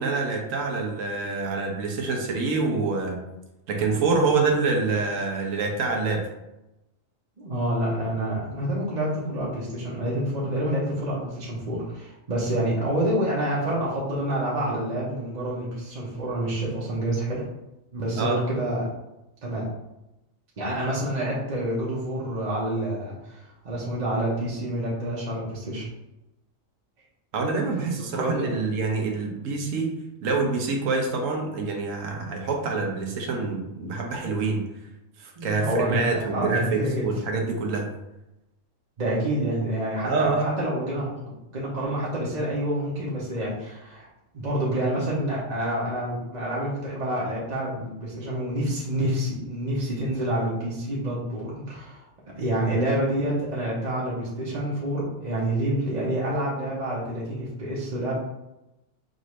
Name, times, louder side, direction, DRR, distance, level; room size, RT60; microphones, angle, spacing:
voice 1, 0.0-3.2 3.7-6.3 18.2-18.4 27.3-29.9 30.2-34.6 35.2-37.9 40.0-40.5, right 4 dB, 70° right, 1 dB, 1.2 m, -26 dB
voice 2, 7.4-17.4 17.9-18.9 19.4-19.7 20.6-25.9 28.0-28.6 35.4-36.0 36.3-37.1 39.0-44.1 44.3-52.0 52.4-58.1, right 1 dB, 35° right, -6 dB, 0.9 m, -28 dB
5.1 x 2.6 x 3.1 m, 0.93 s
omnidirectional pair, 1.4 m